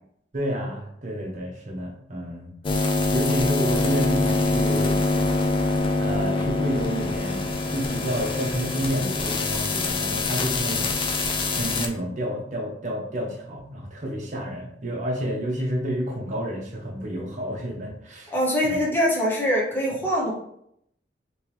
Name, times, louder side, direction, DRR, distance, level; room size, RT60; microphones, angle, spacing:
voice 1, 0.3-2.5 3.1-5.0 6.0-11.0 11.5-18.3 18.6-18.8, equal, 45° right, 0 dB, 0.8 m, -30 dB
sound 1, 2.6-11.9, left 3 dB, 30° left, 0.4 m, -24 dB
voice 2, 18.3-20.3, equal, 10° left, -4 dB, 1.0 m, -23 dB
3.4 x 3.0 x 3.1 m, 0.72 s
head